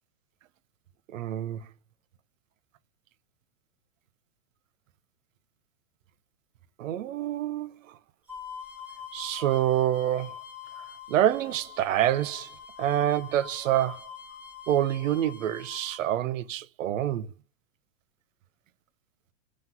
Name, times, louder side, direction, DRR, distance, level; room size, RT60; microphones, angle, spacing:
voice 1, 1.1-1.6 6.8-7.7 9.1-10.3 11.1-12.5 12.8-14.1 14.7-17.3, right 12 dB, 85° right, 0.7 m, -26 dB
sound 1, 8.3-16.0, left 7 dB, 5° right, 0.8 m, -44 dB
5.8 x 3.1 x 5.4 m
supercardioid pair, 175°, 38 cm